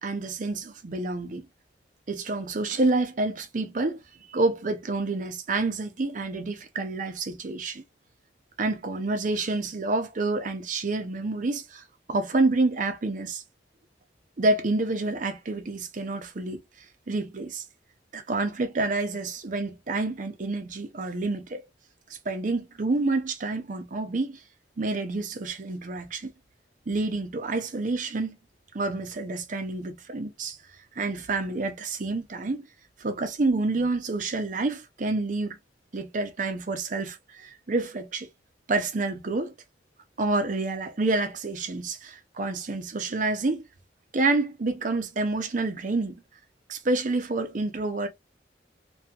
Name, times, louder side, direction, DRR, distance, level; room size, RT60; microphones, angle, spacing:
voice 1, 0.0-1.4 2.1-4.0 4.3-7.8 8.6-11.8 12.1-13.4 14.4-16.6 17.1-17.6 18.1-21.6 22.1-24.4 24.8-26.3 26.9-28.4 28.7-30.6 31.0-32.7 33.0-35.6 35.9-38.3 38.7-39.5 40.2-43.7 44.1-46.2 46.7-48.1, right 3 dB, 45° right, 0.5 m, -28 dB
2.6 x 2.4 x 2.7 m
head